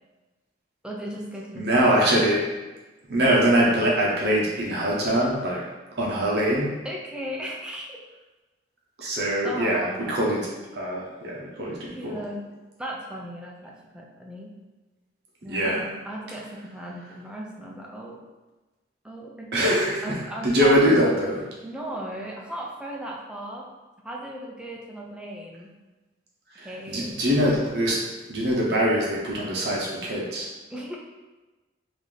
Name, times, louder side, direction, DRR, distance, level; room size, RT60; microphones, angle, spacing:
voice 1, 0.8-2.0 6.8-8.0 9.0-9.1 9.4-10.2 11.9-14.6 15.4-18.2 19.0-21.3 21.6-23.7 24.0-25.8 26.6-27.2 30.7-31.0, right 1 dB, 5° right, -2 dB, 0.4 m, -36 dB
voice 2, 1.6-2.4 3.1-5.6 5.9-6.8 9.0-12.2 15.4-15.8 19.5-20.2 20.4-21.4 26.6-28.0 28.3-30.5, equal, 60° right, -4 dB, 0.7 m, -23 dB
3.9 x 2.5 x 3.2 m, 1.2 s
head